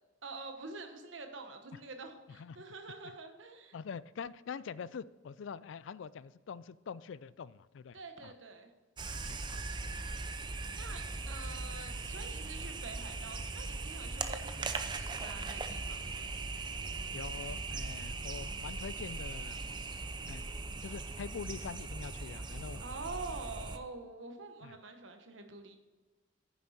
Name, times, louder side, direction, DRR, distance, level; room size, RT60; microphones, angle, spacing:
voice 1, 0.2-3.8 7.9-8.7 10.7-16.3 22.8-25.8, right 3 dB, 75° right, 6 dB, 1.2 m, -46 dB
voice 2, 2.3-2.6 3.7-8.3 9.1-9.6 17.1-19.6 20.3-20.4 20.8-22.8 24.6-24.7, left 6 dB, 70° left, 18 dB, 0.4 m, -44 dB
sound 1, 9.0-23.8, right 3 dB, 25° right, 0.5 m, -39 dB
9.7 x 7.2 x 4.3 m, 1.3 s
head